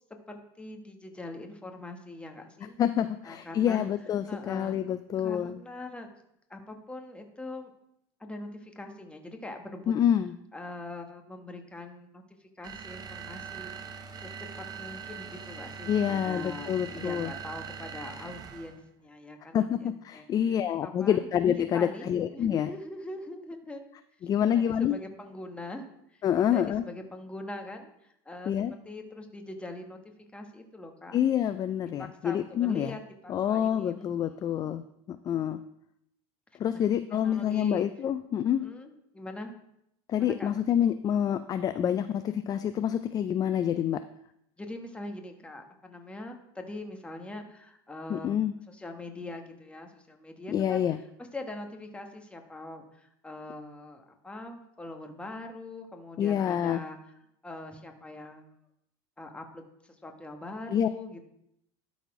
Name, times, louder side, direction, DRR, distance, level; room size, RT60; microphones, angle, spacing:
voice 1, 0.3-2.8 3.2-3.9 4.3-4.8 5.2-6.1 6.5-7.7 8.2-9.9 10.5-12.2 12.6-20.3 20.8-21.3 21.7-23.8 24.5-25.9 26.1-26.2 26.5-28.5 28.8-30.0 30.3-31.2 32.0-34.5 36.7-36.8 37.1-37.9 38.5-39.5 40.2-40.5 44.6-48.4 48.7-50.9 51.3-57.0 57.4-58.5 59.2-61.2, left 2 dB, 10° left, 4 dB, 1.2 m, -42 dB
voice 2, 2.8-5.6 9.9-10.3 15.9-17.3 19.5-22.7 24.2-25.0 26.2-26.8 28.5-28.8 31.1-33.0 33.3-35.6 36.6-38.7 40.1-44.0 48.1-48.5 50.5-51.0 56.2-56.8 60.7-60.9, left 9 dB, 30° left, 11 dB, 0.3 m, -27 dB
sound 1, 12.6-18.8, right 7 dB, 30° right, 0.8 m, -41 dB
11.5 x 4.1 x 4.8 m, 0.77 s
supercardioid pair, 120°, 13 cm